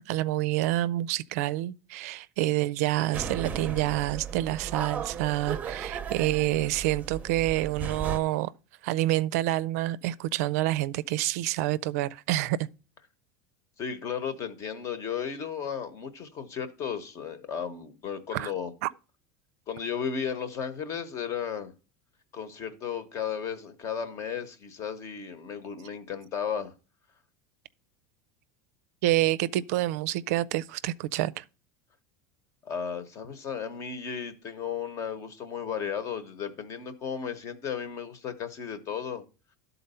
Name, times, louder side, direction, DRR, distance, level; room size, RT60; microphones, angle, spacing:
voice 1, 0.0-8.5 8.8-12.7 18.3-18.5 18.8-18.9 29.0-31.4, right 16 dB, 75° right, 0.4 m, -28 dB
sound 1, 3.1-8.2, right 7 dB, 20° right, 0.7 m, -36 dB
voice 2, 13.8-18.7 19.7-21.7 22.3-26.7 32.6-39.2, left 7 dB, 35° left, 1.1 m, -34 dB
12.0 x 4.0 x 5.5 m
supercardioid pair, 140°, 8 cm